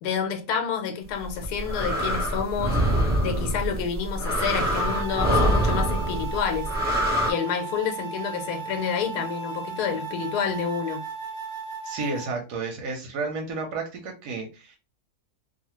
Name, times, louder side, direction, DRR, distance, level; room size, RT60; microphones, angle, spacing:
voice 1, 0.0-6.7 7.3-11.0, left 7 dB, 80° left, 1.2 m, -29 dB
sound 1, 1.2-7.3, equal, 10° right, 0.6 m, -25 dB
sound 2, 4.7-12.3, right 6 dB, 50° right, 1.0 m, -36 dB
voice 2, 11.8-14.8, right 3 dB, 85° right, 1.2 m, -32 dB
2.6 x 2.4 x 2.9 m
omnidirectional pair, 1.7 m